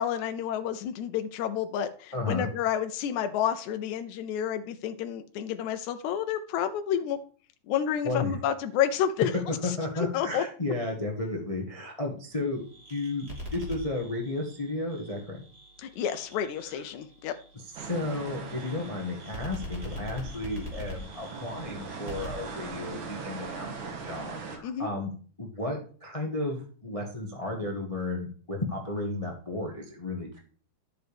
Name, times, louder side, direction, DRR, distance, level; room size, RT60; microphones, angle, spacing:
voice 1, 0.0-7.2 7.7-10.4 15.8-17.3 24.6-24.9, left 9 dB, 90° left, 8 dB, 2.0 m, -30 dB
voice 2, 2.1-2.5 8.0-8.4 9.6-12.6 12.9-13.3 13.5-15.4 16.6-16.8 17.8-25.1 25.4-30.4, left 2 dB, 60° left, 1 dB, 0.3 m, -33 dB
sound 1, 12.3-23.6, equal, 35° right, 3.3 m, -44 dB
sound 2, 17.8-24.6, right 4 dB, 80° right, 3.0 m, -40 dB
11.5 x 7.7 x 3.4 m, 0.43 s
omnidirectional pair, 3.3 m